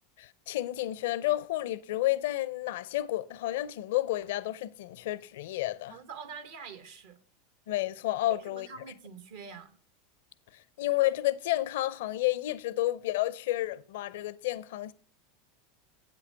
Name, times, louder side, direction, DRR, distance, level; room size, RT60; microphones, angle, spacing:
voice 1, 0.2-6.0 7.7-8.7 10.8-14.9, left 16 dB, 70° left, 0.5 m, -31 dB
voice 2, 5.9-7.2 8.3-9.8, right 6 dB, 70° right, 1.1 m, -45 dB
8.4 x 7.6 x 4.5 m
hypercardioid pair, 90°, 0 cm